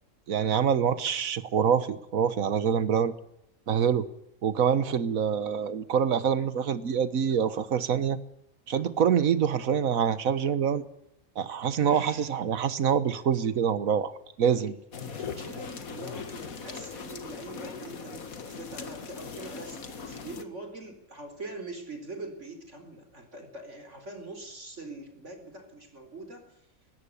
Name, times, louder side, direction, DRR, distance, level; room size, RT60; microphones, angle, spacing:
voice 1, 0.3-3.1 3.7-4.1 4.4-8.2 8.7-10.8 11.4-14.1 14.4-14.7, right 7 dB, 65° right, 14 dB, 1.6 m, -25 dB
voice 2, 11.8-12.4 14.6-14.7 15.0-26.6, right 2 dB, 50° right, 6 dB, 4.4 m, -43 dB
sound 1, 14.9-20.4, left 5 dB, 70° left, 2.1 m, -40 dB
19.5 x 17.5 x 8.4 m, 0.81 s
omnidirectional pair, 1.5 m